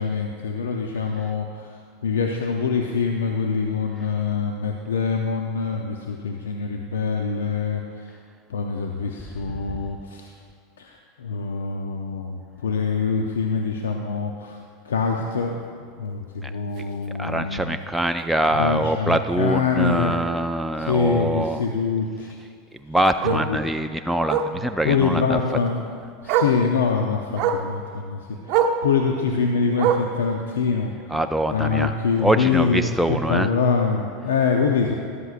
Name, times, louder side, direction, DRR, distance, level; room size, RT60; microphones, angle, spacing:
voice 1, 0.0-8.1 8.5-10.3 10.8-17.8 18.5-20.1 20.8-22.4 23.2-23.6 24.5-25.9 26.2-30.9 31.5-34.9, left 5 dB, 90° left, 3 dB, 0.6 m, -25 dB
Bark, 16.8-16.9 17.3-17.4 17.8-17.9 18.2-18.3 19.7-19.8 22.3-22.4 23.2-23.5 24.3-24.6 25.8-25.9 26.3-26.6 27.3-27.7 28.5-28.8 29.8-30.2 31.2-31.3, right 7 dB, 60° right, 0.7 m, -23 dB
voice 2, 17.2-21.6 22.8-25.4 26.3-26.4 31.1-31.9 32.2-33.5, right 1 dB, ahead, 6 dB, 0.3 m, -24 dB
13.5 x 11.5 x 2.5 m, 2.2 s
hypercardioid pair, 100°, 0 cm